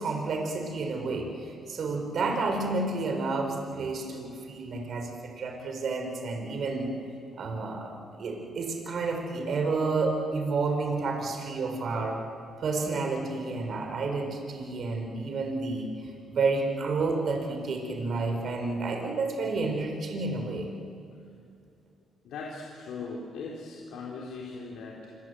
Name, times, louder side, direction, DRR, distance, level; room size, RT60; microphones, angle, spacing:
voice 1, 0.0-6.9 7.4-7.9 8.2-12.2 12.6-20.7, right 3 dB, 60° right, 3 dB, 4.3 m, -30 dB
voice 2, 22.2-25.2, left 4 dB, 80° left, -2 dB, 3.7 m, -39 dB
27.0 x 24.5 x 7.9 m, 2.4 s
cardioid pair, 90°, 0 cm